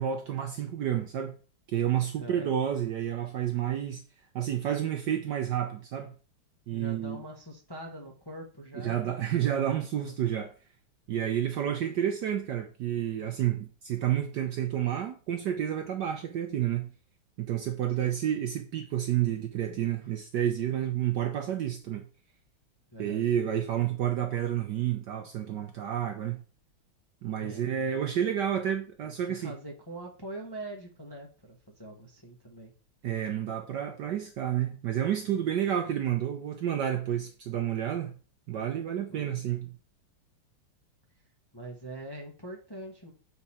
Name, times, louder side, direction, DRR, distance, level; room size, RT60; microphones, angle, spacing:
voice 1, 0.0-1.3 1.7-4.0 4.3-6.1 6.7-7.2 8.8-10.5 11.1-16.9 17.4-22.0 23.0-26.4 27.2-29.5 33.0-38.1 38.5-39.7, right 10 dB, 70° right, 1.1 m, -30 dB
voice 2, 2.2-2.5 6.7-9.3 18.0-18.2 22.9-23.2 27.4-28.1 29.0-32.7 39.1-39.5 41.5-43.1, right 1 dB, 15° left, 0.9 m, -43 dB
7.0 x 4.5 x 4.2 m
omnidirectional pair, 2.4 m